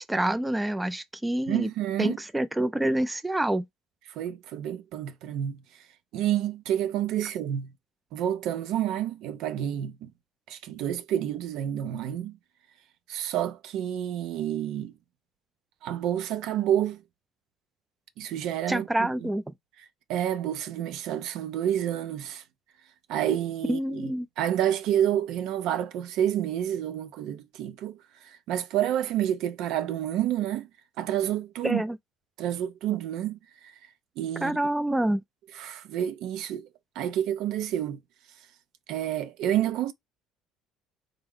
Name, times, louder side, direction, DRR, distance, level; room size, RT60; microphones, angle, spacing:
voice 1, 0.0-1.7 2.0-3.7 18.7-19.4 23.7-24.3 31.6-32.0 34.4-35.2, right 1 dB, 10° right, 0.3 m, -27 dB
voice 2, 1.5-2.2 4.2-5.6 6.1-7.7 8.1-10.1 10.5-12.4 13.1-14.9 15.8-17.0 18.2-19.3 20.1-22.4 23.1-30.7 31.0-31.8 32.4-33.4 34.2-34.6 35.5-36.7 37.0-38.0 38.9-39.9, right 11 dB, 70° right, 0.5 m, -29 dB
3.5 x 2.0 x 3.6 m
supercardioid pair, 95°, 0 cm